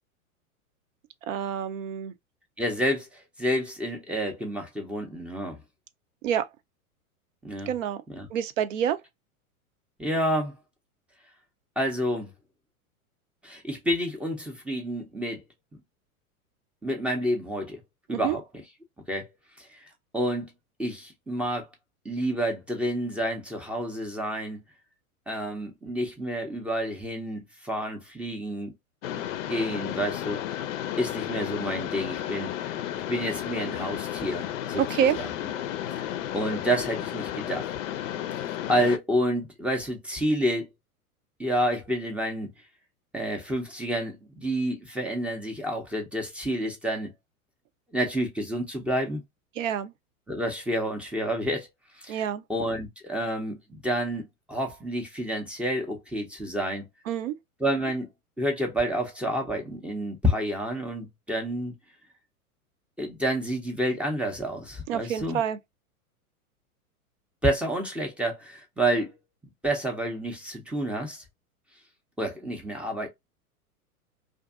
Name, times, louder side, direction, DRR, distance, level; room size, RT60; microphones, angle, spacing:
voice 1, 1.3-2.1 6.2-6.5 7.7-8.0 8.3-9.0 18.1-18.4 34.8-35.2 49.6-49.9 52.1-52.4 57.1-57.4 64.9-65.6, right 9 dB, 60° right, 0.6 m, -27 dB
voice 2, 2.6-5.6 7.4-7.7 8.1-8.3 10.0-10.5 11.8-12.3 13.4-15.4 16.8-17.8 18.1-18.4 19.1-19.3 19.6-19.9 20.1-20.5 20.8-21.7 22.0-24.6 25.3-28.7 29.4-30.4 31.0-32.5 33.1-35.3 35.9-36.1 36.3-37.7 38.7-40.7 41.4-42.5 43.1-47.1 47.9-49.2 50.3-51.7 52.0-56.9 57.6-58.1 58.4-61.8 63.0-65.4 67.4-69.1 69.6-71.2 72.2-73.1, equal, 5° right, 0.4 m, -29 dB
Mechanisms, 29.0-39.0, left 11 dB, 60° left, 0.5 m, -33 dB
2.5 x 2.5 x 2.3 m
hypercardioid pair, 100°, 44 cm